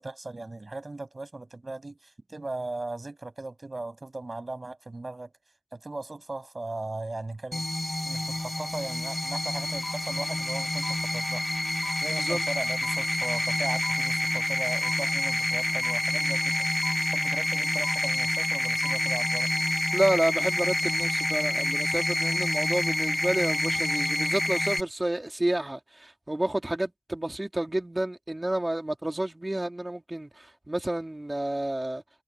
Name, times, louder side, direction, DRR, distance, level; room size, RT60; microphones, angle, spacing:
voice 1, 0.0-5.3 5.7-7.6 8.0-11.4 12.0-16.7 17.1-19.5, right 2 dB, 45° right, 7.5 m, -38 dB
sound 1, 7.5-24.8, left 1 dB, 20° left, 1.8 m, -28 dB
sound 2, 9.8-10.5 10.8-11.6 11.8-12.6 12.8-13.6 13.8-14.6 14.8-15.6 15.8-16.6 16.8-17.6 17.8-18.6 18.8-19.6, left 4 dB, 55° left, 3.2 m, -44 dB
voice 2, 19.9-32.0, right 1 dB, 25° right, 3.8 m, -30 dB
wide cardioid pair, 70°, 0 cm